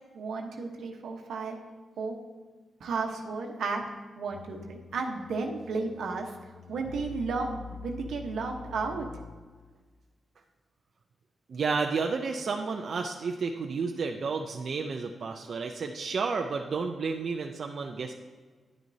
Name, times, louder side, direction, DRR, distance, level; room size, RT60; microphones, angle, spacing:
voice 1, 0.1-1.6 2.0-2.2 2.8-3.8 4.2-6.3 6.7-9.1, right 4 dB, 85° right, 3 dB, 1.0 m, -33 dB
sound 1, 4.3-9.7, left 6 dB, 80° left, 0.5 m, -46 dB
voice 2, 11.5-18.1, right 4 dB, 60° right, 3 dB, 0.5 m, -31 dB
10.0 x 9.3 x 2.7 m, 1.4 s
cardioid pair, 90°, 0 cm